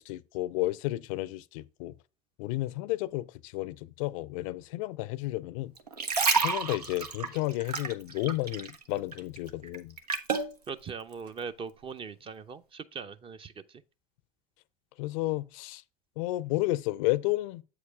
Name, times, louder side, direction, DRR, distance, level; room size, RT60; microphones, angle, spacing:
voice 1, 0.0-1.9 2.4-5.7 6.4-9.9 15.0-15.8 16.2-17.6, left 18 dB, 60° left, 0.5 m, -32 dB
sound 1, 5.8-8.8 9.1-10.5 11.1-11.3, right 4 dB, 85° right, 0.9 m, -29 dB
voice 2, 10.7-13.5, right 5 dB, 25° right, 0.6 m, -40 dB
8.0 x 4.9 x 3.4 m
figure-of-eight pair, 75°, 20 cm